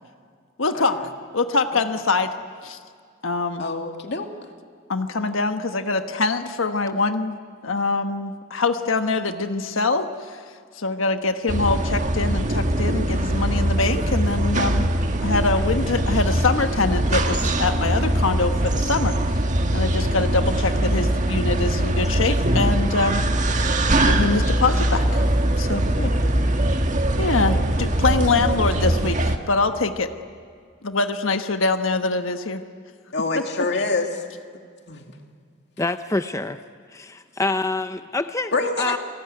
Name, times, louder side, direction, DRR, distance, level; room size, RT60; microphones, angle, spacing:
voice 1, 0.6-1.0 1.3-2.3 2.6-2.8 3.2-3.6 4.9-7.4 7.6-10.4 10.8-14.9 15.2-19.4 19.7-23.3 23.5-23.7 24.0-25.2 25.6-25.9 27.2-30.1 30.8-32.6, left 3 dB, 85° left, 7 dB, 1.3 m, -24 dB
voice 2, 3.6-4.3 26.0-26.1 33.1-34.2 34.9-35.1 38.5-39.0, left 3 dB, 60° left, 4 dB, 2.6 m, -26 dB
sound 1, 11.5-29.4, right 1 dB, 40° right, 1.7 m, -22 dB
voice 3, 35.8-36.6 36.9-38.5 38.8-39.0, left 2 dB, 15° left, 9 dB, 0.6 m, -26 dB
29.0 x 21.0 x 9.7 m, 2.1 s
head